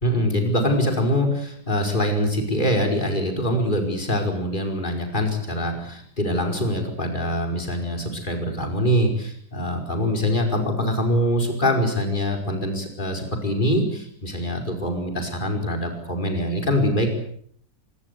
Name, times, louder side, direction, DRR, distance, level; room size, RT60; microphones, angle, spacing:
voice 1, 0.0-17.1, equal, 30° left, 3 dB, 5.2 m, -24 dB
25.5 x 21.5 x 8.2 m, 0.64 s
omnidirectional pair, 1.7 m